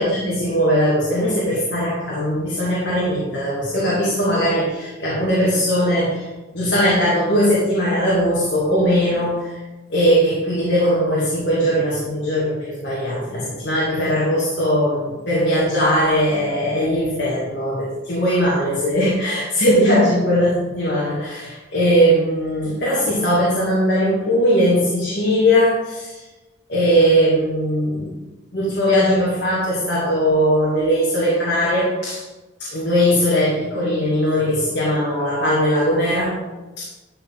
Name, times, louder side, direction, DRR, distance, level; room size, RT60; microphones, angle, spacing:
voice 1, 0.0-6.3 6.5-9.6 9.9-26.2 26.7-28.1 28.5-32.2 32.6-36.4 36.8-36.9, equal, 60° left, -8 dB, 2.4 m, -19 dB
12.0 x 4.7 x 4.1 m, 1.1 s
head